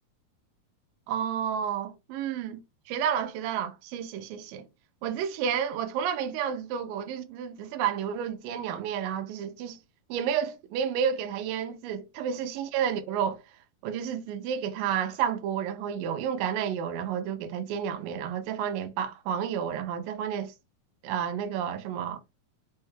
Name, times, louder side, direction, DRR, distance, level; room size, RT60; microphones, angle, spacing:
voice 1, 1.1-2.6 2.9-4.6 5.0-9.8 10.1-13.4 13.8-20.5 21.0-22.2, right 8 dB, 85° right, 2.2 m, -31 dB
5.4 x 2.2 x 3.2 m
omnidirectional pair, 4.0 m